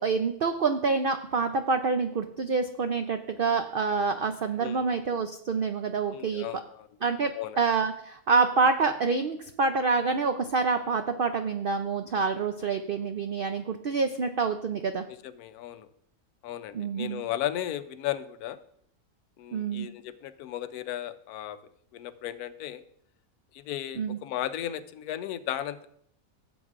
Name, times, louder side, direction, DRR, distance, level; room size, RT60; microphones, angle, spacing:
voice 1, 0.0-6.5 7.0-15.0 16.7-17.2 19.5-19.9 24.0-24.2, right 4 dB, 80° right, 7 dB, 0.5 m, -27 dB
voice 2, 6.1-6.9 7.3-7.6 15.1-15.9 16.4-18.6 19.4-21.6 21.9-22.8 23.5-25.9, left 12 dB, 80° left, 12 dB, 1.1 m, -35 dB
16.0 x 7.9 x 2.5 m, 0.70 s
omnidirectional pair, 1.6 m